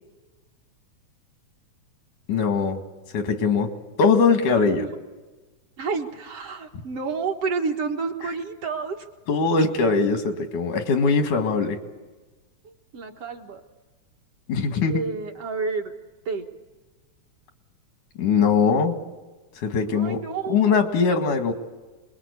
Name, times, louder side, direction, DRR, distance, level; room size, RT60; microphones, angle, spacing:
voice 1, 2.3-2.8 3.1-3.7 4.0-4.9 9.3-11.8 14.5-15.1 18.2-19.0 19.6-20.2 20.5-21.5, left 5 dB, 90° left, 6 dB, 3.3 m, -21 dB
voice 2, 5.8-9.1 12.9-13.6 14.9-15.9 16.3-16.5 19.9-20.8, right 4 dB, 55° right, 2 dB, 2.3 m, -29 dB
28.0 x 21.5 x 8.4 m, 1.2 s
omnidirectional pair, 3.4 m